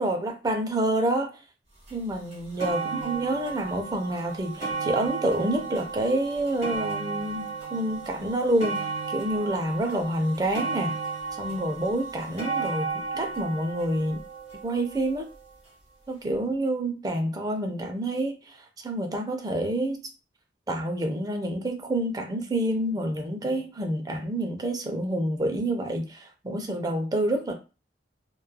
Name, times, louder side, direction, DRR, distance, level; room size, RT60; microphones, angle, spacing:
voice 1, 0.0-1.4 1.9-11.0 11.4-14.2 14.6-15.2 16.1-18.4 18.8-20.0 20.7-27.5, right 1 dB, 20° right, 0.4 m, -28 dB
sound 1, 1.9-2.0 2.3-15.5 16.3-16.4, right 4 dB, 40° right, 1.3 m, -34 dB
2.9 x 2.3 x 2.2 m
head